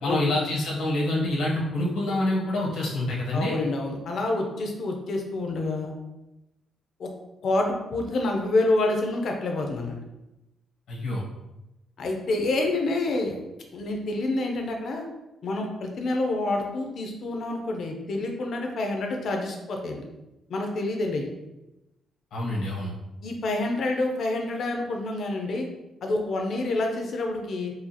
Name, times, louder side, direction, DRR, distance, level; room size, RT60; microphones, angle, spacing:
voice 1, 0.0-3.6 10.9-11.2 22.3-22.9, left 1 dB, 75° left, -4 dB, 1.3 m, -26 dB
voice 2, 3.3-5.9 7.0-7.1 7.4-10.0 12.0-13.4 13.7-15.1 15.4-20.0 20.5-21.3 23.2-25.7 26.0-27.7, left 2 dB, 50° left, 2 dB, 0.6 m, -27 dB
4.7 x 2.4 x 2.8 m, 0.96 s
cardioid pair, 165°, 0 cm